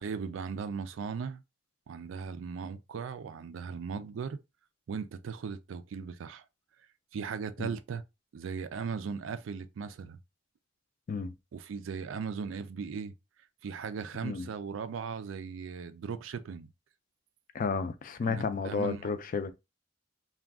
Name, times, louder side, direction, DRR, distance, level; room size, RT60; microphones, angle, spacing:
voice 1, 0.0-1.4 1.9-4.4 4.9-6.4 7.1-8.0 8.3-10.2 11.5-13.1 13.6-16.7 18.2-19.0, right 6 dB, 90° right, 0.4 m, -38 dB
voice 2, 17.5-19.5, left 5 dB, 45° left, 0.4 m, -32 dB
2.4 x 2.3 x 3.5 m
head